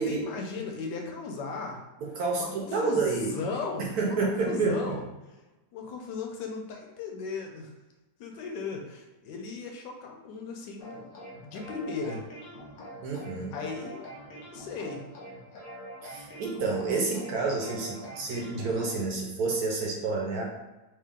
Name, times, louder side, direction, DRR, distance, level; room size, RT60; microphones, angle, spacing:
voice 1, 0.0-1.8 2.4-5.0 5.7-7.7 8.2-11.1 11.4-12.2 13.5-14.1 14.5-15.0, left 4 dB, 75° left, 2 dB, 1.2 m, -36 dB
voice 2, 2.0-3.4 3.8-5.0 13.0-13.6 16.0-20.4, right 3 dB, 65° right, -1 dB, 1.0 m, -29 dB
sound 1, 10.8-19.1, equal, 55° left, 1.1 m, -45 dB
3.1 x 2.9 x 3.5 m, 1.1 s
omnidirectional pair, 1.9 m